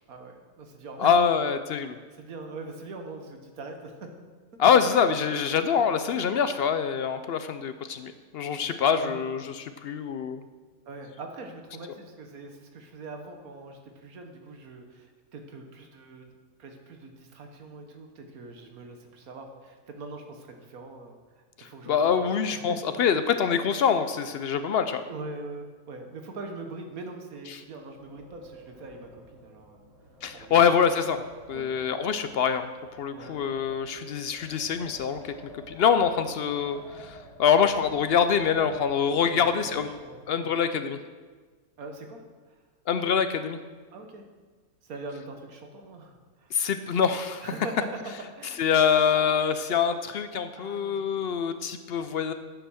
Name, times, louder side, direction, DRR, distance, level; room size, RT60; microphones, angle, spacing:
voice 1, 0.1-1.2 2.2-4.3 4.6-4.7 5.0-5.1 8.5-8.7 9.0-9.2 10.8-22.4 22.7-22.9 23.3-23.5 25.1-29.8 30.3-30.8 31.5-31.7 33.1-33.4 39.2-40.5 41.8-42.6 43.9-44.2 44.8-46.6 47.4-47.9 48.4-48.7 50.5-51.0, right 3 dB, 80° right, 4 dB, 1.6 m, -42 dB
voice 2, 1.0-2.0 4.6-10.4 21.6-25.0 30.2-31.2 31.5-32.7 33.0-35.3 35.7-39.9 40.3-41.0 42.9-43.6 46.5-47.5 48.6-52.3, left 7 dB, 65° left, 10 dB, 0.6 m, -25 dB
Wind, 27.8-40.4, equal, 60° right, 3.5 m, -50 dB
8.9 x 7.1 x 6.2 m, 1.4 s
omnidirectional pair, 1.5 m